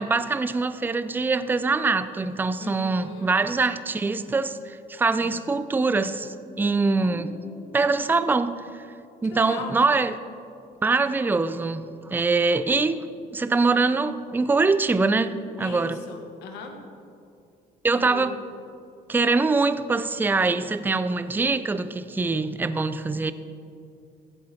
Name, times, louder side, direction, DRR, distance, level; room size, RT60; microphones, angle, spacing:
voice 1, 0.0-7.3 7.7-8.9 9.2-10.2 10.8-13.0 13.3-16.0 17.8-18.4 19.1-23.3, right 3 dB, 10° right, 13 dB, 0.4 m, -23 dB
voice 2, 2.6-3.4 7.0-8.1 9.3-9.7 15.6-16.8 17.9-18.3, left 4 dB, 90° left, 4 dB, 1.5 m, -39 dB
15.0 x 7.8 x 4.5 m, 2.4 s
cardioid pair, 110°, 17 cm